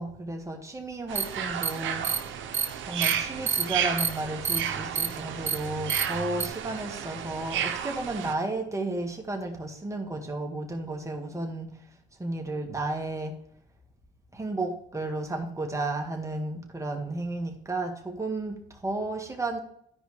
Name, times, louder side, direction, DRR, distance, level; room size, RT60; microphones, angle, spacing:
voice 1, 0.0-2.4 2.9-11.7 12.2-13.3 14.3-19.6, right 2 dB, 15° right, 1 dB, 1.9 m, -33 dB
sound 1, 1.1-8.3, right 9 dB, 75° right, 0.9 m, -33 dB
sound 2, 1.2-1.3 1.6-1.7 2.0-2.2 2.5-2.7 3.0-3.1 3.5-3.6 4.0-4.1 4.5-4.6 5.0-5.1 5.5-5.6 5.9-6.0 6.4-6.5, right 6 dB, 35° right, 0.9 m, -26 dB
12.5 x 5.1 x 3.3 m, 0.67 s
cardioid pair, 90°, 20 cm